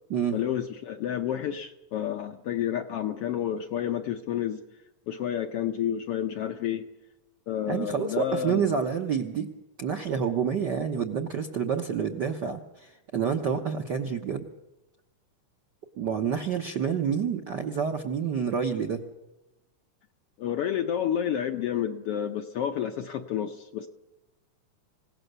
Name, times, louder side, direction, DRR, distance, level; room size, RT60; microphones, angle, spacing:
voice 1, 0.3-4.6 5.1-6.9 7.5-8.7 20.4-23.9, left 10 dB, 70° left, 6 dB, 1.5 m, -30 dB
voice 2, 7.7-9.5 9.8-14.5 16.0-19.0, right 7 dB, 65° right, 4 dB, 1.0 m, -28 dB
27.5 x 17.0 x 6.8 m, 0.97 s
omnidirectional pair, 3.6 m